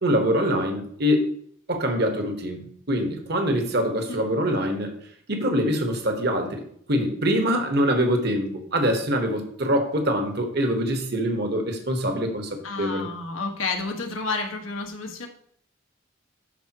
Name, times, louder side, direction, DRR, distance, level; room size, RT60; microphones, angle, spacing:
voice 1, 0.0-1.3 1.7-5.0 5.3-6.6 6.9-13.1, equal, 55° right, 4 dB, 1.4 m, -24 dB
voice 2, 12.6-15.3, left 3 dB, 85° left, 3 dB, 1.6 m, -30 dB
12.5 x 5.0 x 3.0 m, 0.64 s
head